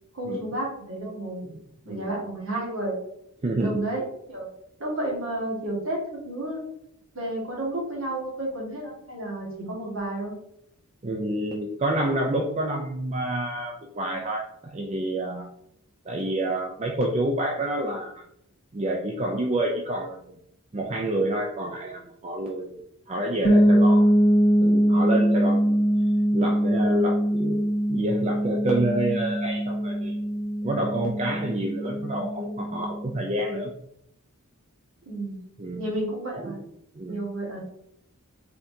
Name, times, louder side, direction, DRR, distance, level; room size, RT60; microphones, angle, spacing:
voice 1, 0.1-1.4 1.9-3.0 3.6-4.5 4.8-6.6 7.2-10.3 35.1-35.4 35.8-36.6 37.0-37.6, right 1 dB, 65° right, -3 dB, 1.7 m, -31 dB
voice 2, 3.4-3.8 11.0-15.5 16.1-18.3 18.7-20.4 20.7-22.8 23.1-24.1 24.6-25.8 26.3-27.6 27.9-30.2 30.6-33.7 35.6-35.9 36.4-36.5 36.9-37.2, right 1 dB, 30° right, 1 dB, 0.4 m, -28 dB
sound 1, 23.4-33.1, equal, 45° left, 1.3 m, -22 dB
4.4 x 3.8 x 2.7 m, 0.73 s
head